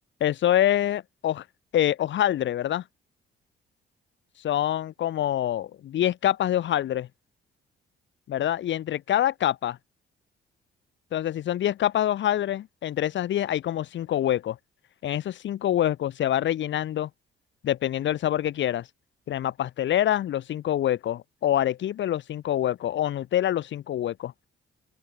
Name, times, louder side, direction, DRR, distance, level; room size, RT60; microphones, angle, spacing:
voice 1, 0.2-1.4 1.7-2.8 4.4-7.1 8.3-9.8 11.1-14.6 15.0-17.1 17.6-18.9 19.3-24.3, left 11 dB, 70° left, 1.5 m, -25 dB
open air
cardioid pair, 90°, 20 cm